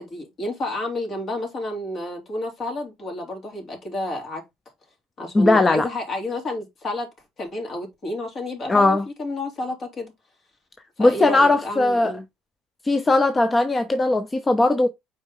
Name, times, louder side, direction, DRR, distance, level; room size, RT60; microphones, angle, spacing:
voice 1, 0.0-4.4 5.2-7.1 7.4-10.1 11.0-12.2, left 2 dB, 50° left, 3.4 m, -30 dB
voice 2, 5.3-5.9 8.7-9.1 11.0-12.1 12.8-14.9, left 2 dB, 20° left, 0.8 m, -18 dB
6.4 x 4.6 x 3.8 m
supercardioid pair, 80°, 0 cm